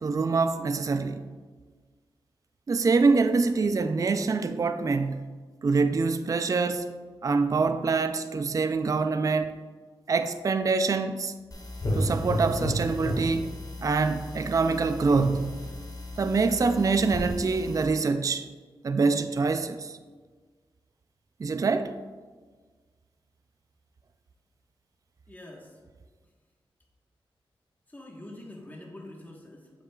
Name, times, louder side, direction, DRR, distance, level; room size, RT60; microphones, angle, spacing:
voice 1, 0.0-1.3 2.7-5.3 5.6-9.6 10.1-11.3 11.9-13.5 13.8-15.6 16.2-18.5 18.8-20.0 21.4-21.9, right 4 dB, 40° right, 0.4 m, -25 dB
sound 1, 11.5-17.9, equal, 40° left, 1.7 m, -33 dB
voice 2, 25.3-25.8 27.9-29.8, left 1 dB, 20° left, 1.2 m, -45 dB
7.4 x 6.6 x 2.3 m
cardioid pair, 65°, 9 cm